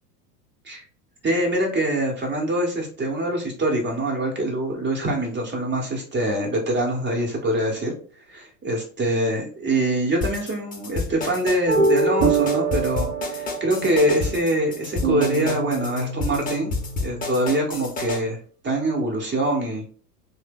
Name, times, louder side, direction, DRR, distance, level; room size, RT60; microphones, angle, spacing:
voice 1, 1.2-7.9 8.3-16.7 17.0-18.4 18.6-19.8, right 1 dB, 25° right, 1 dB, 1.2 m, -24 dB
sound 1, 10.2-18.2, left 3 dB, 15° left, 0.8 m, -29 dB
sound 2, 11.7-18.2, right 4 dB, 40° right, 0.8 m, -26 dB
3.2 x 2.2 x 3.6 m, 0.42 s
figure-of-eight pair, 85°, 47 cm